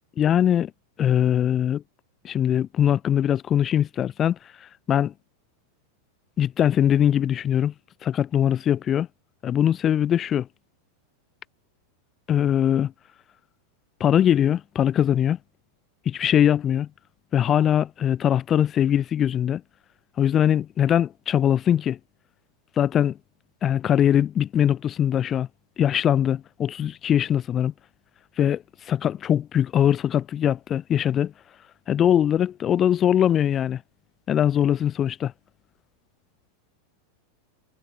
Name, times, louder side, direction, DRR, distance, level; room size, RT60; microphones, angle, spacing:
voice 1, 0.2-0.7 1.0-1.8 2.2-4.4 4.9-5.1 6.4-7.7 8.0-9.1 9.4-10.5 12.3-12.9 14.0-15.4 16.1-16.9 17.3-19.6 20.2-22.0 22.8-23.2 23.6-25.5 25.8-27.7 28.4-28.6 28.9-31.3 31.9-33.8 34.3-35.3, left 10 dB, 25° left, 6.1 m, -21 dB
figure-of-eight pair, 90°, 0 cm